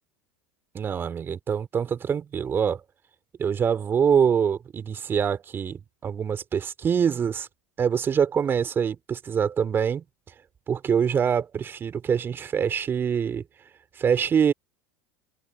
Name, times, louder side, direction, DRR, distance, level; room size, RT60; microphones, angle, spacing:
voice 1, 0.7-2.8 3.4-7.5 7.8-10.0 10.7-13.4 14.0-14.5, right 7 dB, 30° right, 3.3 m, -24 dB
hypercardioid pair, 90°, 7 cm